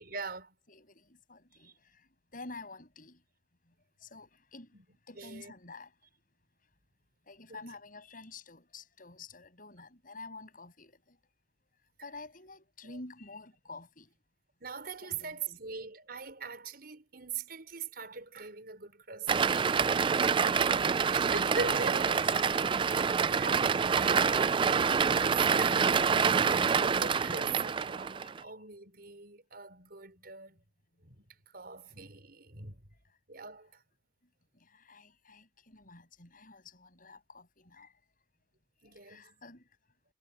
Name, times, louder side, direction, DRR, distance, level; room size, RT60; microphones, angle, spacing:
voice 1, 0.0-0.6 1.6-1.7 4.7-4.8 5.2-5.5 7.5-7.7 12.9-13.0 14.6-22.2 23.3-30.6 31.0-32.8 33.3-33.7 38.8-39.4, right 4 dB, 60° right, 5.6 m, -42 dB
voice 2, 0.7-3.2 3.7-3.8 4.0-4.8 5.1-5.9 7.3-11.2 12.0-14.1 15.0-15.6 20.1-21.0 21.4-22.7 27.3-27.4 28.2-28.5 34.5-37.9 38.8-39.7, left 3 dB, 55° left, 7.9 m, -49 dB
sound 1, 19.3-28.4, right 6 dB, 30° right, 0.3 m, -27 dB
head